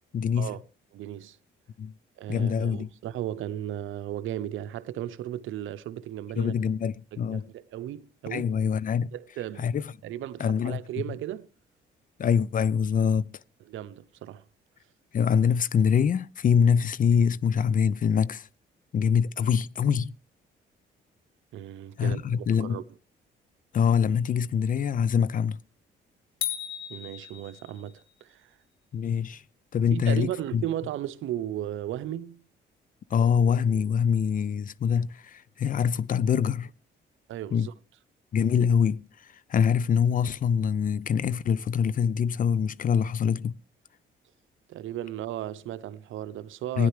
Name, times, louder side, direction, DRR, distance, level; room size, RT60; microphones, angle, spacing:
voice 1, 0.1-0.5 1.8-1.9 2.3-2.9 6.4-7.5 8.3-9.1 9.6-9.8 10.4-10.8 12.2-13.3 15.1-18.5 18.9-20.1 22.0-22.8 23.7-25.6 28.9-29.4 29.7-30.6 33.1-36.7 37.5-37.7 38.3-43.5 46.8-46.9, left 7 dB, 45° left, 0.5 m, -24 dB
voice 2, 0.9-1.4 2.2-6.5 7.1-8.5 9.1-9.6 10.0-11.5 13.7-14.4 21.5-22.8 26.9-28.6 29.9-32.4 37.3-37.7 44.7-46.9, right 12 dB, 80° right, 0.7 m, -35 dB
sound 1, 26.4-28.0, left 10 dB, 80° left, 1.4 m, -35 dB
16.0 x 10.0 x 3.2 m
cardioid pair, 90°, 20 cm